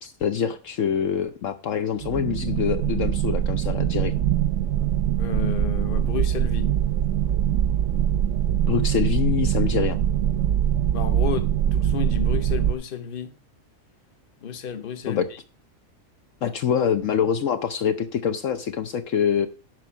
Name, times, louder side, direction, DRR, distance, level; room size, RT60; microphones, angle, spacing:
voice 1, 0.0-4.1 8.6-10.0 15.1-15.3 16.4-19.5, left 8 dB, 70° left, 1.1 m, -25 dB
sound 1, 2.0-12.7, right 10 dB, 65° right, 0.9 m, -23 dB
voice 2, 5.2-6.7 10.9-13.3 14.4-15.2, left 8 dB, 45° left, 1.1 m, -31 dB
11.0 x 4.6 x 7.2 m
omnidirectional pair, 1.5 m